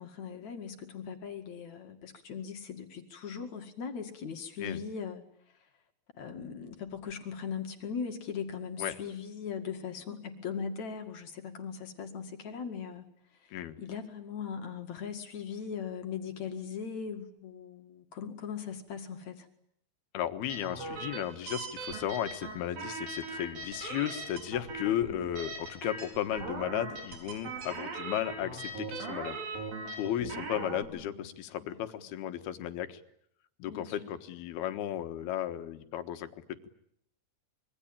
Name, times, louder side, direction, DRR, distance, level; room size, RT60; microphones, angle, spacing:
voice 1, 0.0-5.2 6.2-13.1 13.4-19.5 30.8-31.3 31.6-31.8 33.7-34.1, left 6 dB, 50° left, 5 dB, 3.1 m, -39 dB
voice 2, 20.1-29.4 30.0-33.0 33.6-36.7, left 11 dB, 85° left, 9 dB, 3.4 m, -35 dB
sound 1, 20.5-30.8, right 3 dB, 65° right, 5.8 m, -40 dB
26.0 x 23.5 x 8.9 m, 0.72 s
omnidirectional pair, 4.4 m